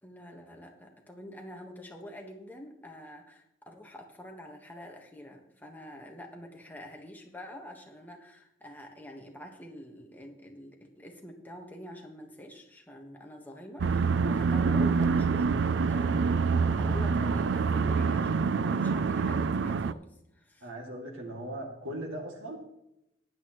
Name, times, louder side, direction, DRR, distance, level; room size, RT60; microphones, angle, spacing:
voice 1, 0.0-20.0 20.3-20.7, left 1 dB, 10° left, 2 dB, 1.4 m, -46 dB
sound 1, 13.8-19.9, right 5 dB, 65° right, 0.4 m, -26 dB
voice 2, 20.6-22.6, right 1 dB, 90° right, 1 dB, 2.4 m, -38 dB
15.0 x 10.5 x 3.1 m, 0.83 s
head